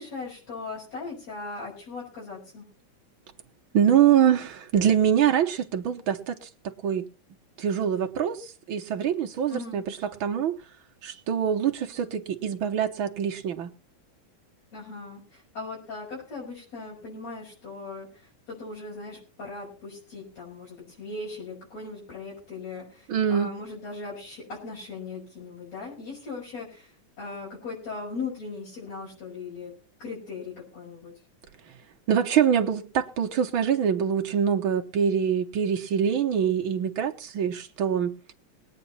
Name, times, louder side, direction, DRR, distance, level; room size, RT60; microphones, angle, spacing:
voice 1, 0.0-2.7 9.5-9.8 14.7-26.9 27.2-29.7 30.0-31.1, left 3 dB, 60° left, 7.3 m, -38 dB
voice 2, 3.7-7.1 7.6-10.5 11.0-13.7 23.1-23.5 32.1-38.3, right 8 dB, 65° right, 1.3 m, -24 dB
21.0 x 9.3 x 4.2 m
omnidirectional pair, 3.5 m